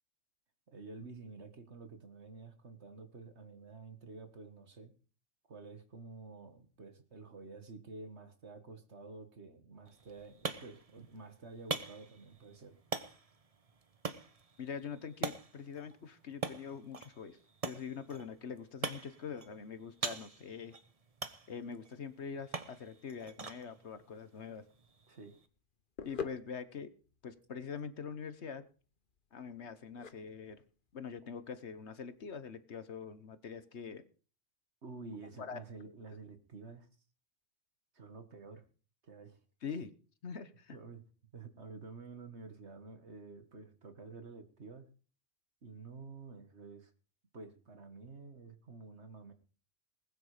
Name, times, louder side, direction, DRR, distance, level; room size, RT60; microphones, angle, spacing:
voice 1, 0.7-4.9 5.5-12.7 25.1-25.4 34.8-36.9 37.9-38.6 39.0-39.4 40.7-41.0 41.3-44.9 45.6-46.9 47.3-49.3, right 3 dB, 60° right, 8 dB, 2.1 m, -50 dB
sound 1, 9.8-25.5, right 4 dB, 30° right, 1.0 m, -44 dB
voice 2, 14.6-17.4 17.6-20.7 21.5-24.7 26.0-26.9 27.2-28.6 29.3-30.6 30.9-34.0 35.4-35.6 36.1-36.2 39.6-39.9 40.2-40.8, left 6 dB, 60° left, 13 dB, 1.4 m, -44 dB
sound 2, 24.6-32.6, left 6 dB, 45° left, 1.1 m, -48 dB
20.0 x 9.5 x 5.0 m, 0.39 s
omnidirectional pair, 1.3 m